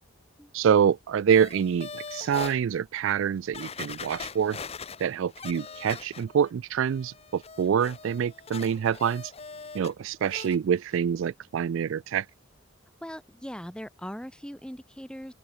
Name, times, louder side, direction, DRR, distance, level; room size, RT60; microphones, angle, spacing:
voice 1, 0.5-4.6 5.0-9.3 9.7-12.3, right 8 dB, 65° right, 0.3 m, -26 dB
sound 1, 1.3-2.6 3.1-3.2 3.5-6.5 6.8-9.9 10.2-10.6 10.9-11.0, left 5 dB, 30° left, 1.0 m, -41 dB
voice 2, 13.0-15.3, equal, 5° left, 3.8 m, -40 dB
open air
head